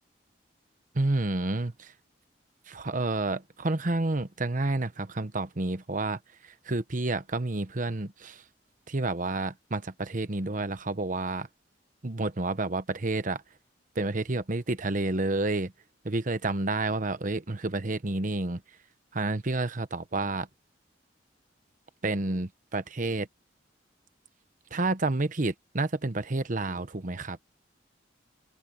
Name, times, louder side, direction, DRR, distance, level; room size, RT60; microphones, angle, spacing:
voice 1, 0.9-1.9 2.7-8.4 8.9-11.5 12.0-13.4 14.0-15.7 16.0-18.6 19.1-20.5 22.0-23.3 24.7-27.4, right 2 dB, 45° right, 1.0 m, -30 dB
open air
head